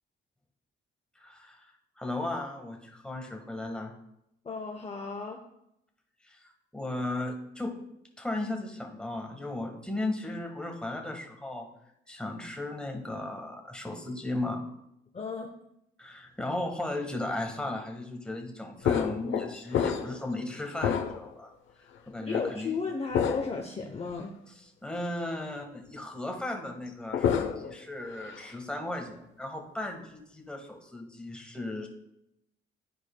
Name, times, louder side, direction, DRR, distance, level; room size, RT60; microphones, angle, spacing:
voice 1, 1.2-1.6 2.0-3.9 6.2-7.8 8.2-11.7 12.1-14.6 16.0-21.5 22.1-22.7 24.8-31.9, left 2 dB, 5° left, 2 dB, 1.5 m, -36 dB
voice 2, 4.4-5.4 15.1-15.5 22.2-24.3, left 4 dB, 30° left, 2 dB, 0.8 m, -35 dB
sound 1, 18.8-20.3 20.7-21.4 22.3-22.5 23.1-23.6 24.1-24.2 26.9-27.8 28.1-28.5, left 8 dB, 75° left, 0.8 m, -29 dB
12.5 x 4.7 x 2.2 m, 0.79 s
cardioid pair, 90°, 20 cm